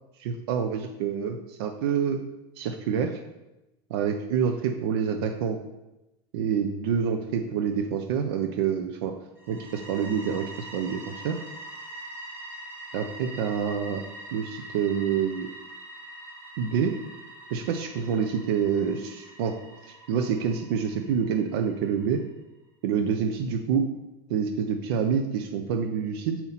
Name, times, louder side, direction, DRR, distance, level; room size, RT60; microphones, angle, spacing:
voice 1, 0.2-2.2 2.6-3.1 3.9-5.6 6.3-9.1 9.5-11.4 12.9-14.0 14.3-15.5 16.6-16.9 17.5-19.6 19.9-22.2 22.8-23.9 24.3-26.4, right 7 dB, 75° right, 5 dB, 0.5 m, -27 dB
sound 1, 9.4-22.1, right 1 dB, 15° right, 0.8 m, -44 dB
5.6 x 4.3 x 4.0 m, 0.97 s
supercardioid pair, 165°, 13 cm